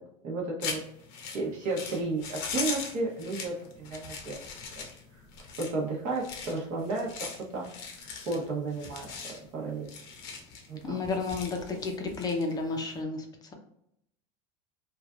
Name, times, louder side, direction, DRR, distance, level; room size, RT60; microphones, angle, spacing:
voice 1, 0.2-0.8 1.2-4.4 4.8-4.9 5.1-5.2 5.6-7.1 7.5-7.6 8.3-9.9 10.7-11.0, right 3 dB, 55° right, -3 dB, 0.9 m, -33 dB
sound 1, 0.6-13.0, left 5 dB, 65° left, 0.8 m, -40 dB
voice 2, 10.8-13.3, left 3 dB, 25° left, 3 dB, 0.6 m, -31 dB
3.2 x 2.4 x 2.4 m, 0.76 s
supercardioid pair, 125°, 17 cm